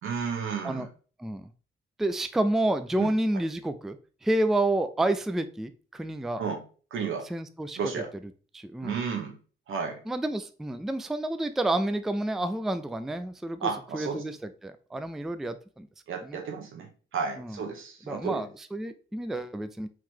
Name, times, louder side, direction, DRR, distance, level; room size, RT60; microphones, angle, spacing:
voice 1, 0.0-0.9 3.0-3.1 6.4-6.6 6.9-7.3 7.8-8.1 8.8-9.4 9.7-10.0 13.6-14.2 16.1-18.4, right 6 dB, 85° right, 3 dB, 1.2 m, -32 dB
voice 2, 1.2-1.5 2.0-6.4 7.2-7.9 8.5-9.0 10.1-15.9 16.2-16.4 17.4-17.6 18.0-19.9, right 1 dB, ahead, 10 dB, 0.3 m, -29 dB
3.8 x 3.0 x 4.4 m, 0.39 s
cardioid pair, 105°, 20 cm